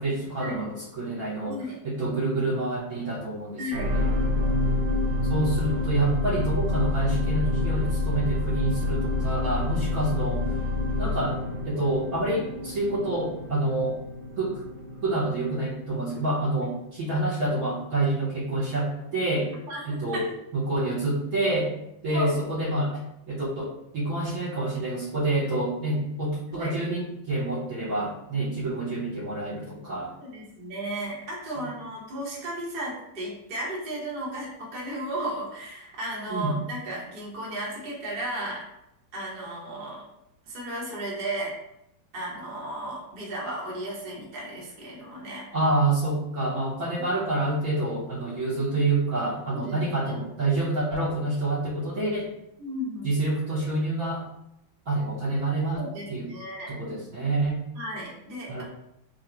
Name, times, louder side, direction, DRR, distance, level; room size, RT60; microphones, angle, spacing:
voice 1, 0.0-4.1 5.2-10.6 11.0-11.4 11.6-14.0 14.4-14.6 15.0-19.5 19.9-21.7 22.0-30.1 31.6-31.7 36.3-36.6 45.5-52.3 53.0-54.2 54.9-56.3 56.7-57.6 58.5-58.6, right 2 dB, 55° right, -6 dB, 1.2 m, -27 dB
voice 2, 3.6-4.0 19.7-19.8 20.1-20.3 22.1-22.5 26.5-26.7 30.2-38.7 39.1-40.0 40.5-41.5 42.1-45.5 47.0-47.1 49.5-49.8 52.6-53.1 55.7-56.7 57.7-58.6, right 1 dB, 35° right, -5 dB, 0.9 m, -34 dB
sound 1, 3.7-16.1 16.7-16.8, left 2 dB, 75° right, 1.6 m, -28 dB
3.7 x 2.1 x 4.4 m, 0.83 s
omnidirectional pair, 2.1 m